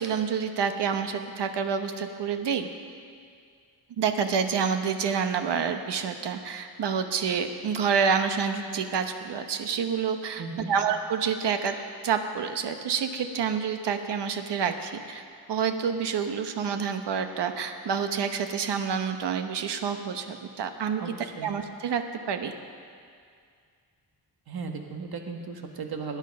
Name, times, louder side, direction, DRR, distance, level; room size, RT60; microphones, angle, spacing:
voice 1, 0.0-2.7 4.0-10.4 10.7-11.7 12.0-15.2 15.5-21.0 21.4-22.5, right 6 dB, 85° right, 7 dB, 1.1 m, -28 dB
voice 2, 10.4-10.7 21.0-21.5 24.5-26.2, right 4 dB, 65° right, 4 dB, 1.5 m, -36 dB
19.0 x 10.0 x 5.4 m, 2.2 s
wide cardioid pair, 150°, 40 cm